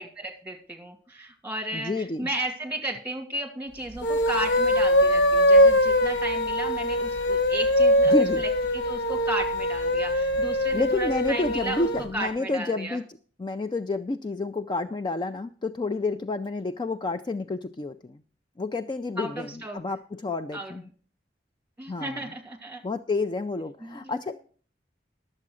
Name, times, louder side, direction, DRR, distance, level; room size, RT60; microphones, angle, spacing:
voice 1, 0.0-11.9 12.1-13.0 19.2-19.8 20.5-20.7 21.8-22.8 23.8-24.1, right 1 dB, 10° right, 3 dB, 2.4 m, -34 dB
voice 2, 1.7-2.3 8.1-8.4 10.7-13.0 13.4-18.2 18.6-20.9 21.9-22.3 22.8-24.4, left 2 dB, 25° left, 9 dB, 0.4 m, -29 dB
sound 1, 3.9-12.1, left 1 dB, 75° left, 0.9 m, -22 dB
12.0 x 7.5 x 6.2 m, 0.44 s
head